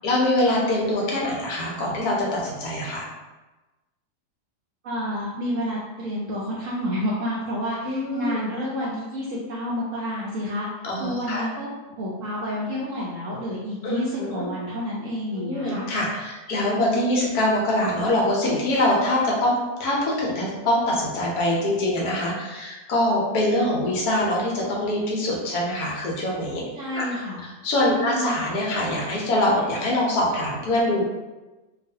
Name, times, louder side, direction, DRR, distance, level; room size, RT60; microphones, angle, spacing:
voice 1, 0.0-3.1 7.8-8.4 10.8-11.5 13.8-14.4 15.4-19.5 19.8-26.6 26.9-27.1 27.6-31.0, left 1 dB, 70° left, -3 dB, 1.2 m, -24 dB
voice 2, 4.8-10.7 11.0-15.9 26.7-27.4 27.9-28.4, equal, 70° right, -5 dB, 0.7 m, -29 dB
3.0 x 2.4 x 2.7 m, 1.1 s
omnidirectional pair, 1.8 m